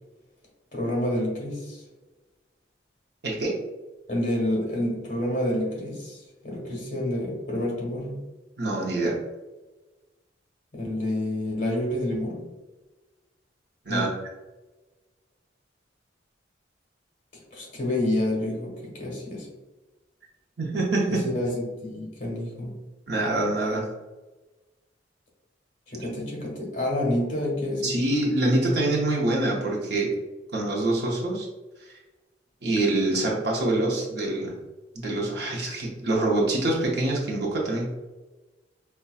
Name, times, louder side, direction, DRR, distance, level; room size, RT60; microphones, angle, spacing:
voice 1, 0.7-1.8 4.1-8.2 10.7-12.5 13.9-14.1 17.3-19.5 21.1-22.8 25.9-28.2, left 1 dB, 40° left, -3 dB, 1.4 m, -28 dB
voice 2, 3.2-3.5 8.6-9.2 13.9-14.1 20.6-21.2 23.1-23.9 27.8-30.1 30.5-31.5 31.9-32.0 32.6-34.5 34.9-37.9, right 2 dB, 60° right, -2 dB, 0.7 m, -25 dB
5.4 x 2.2 x 2.3 m, 1.2 s
head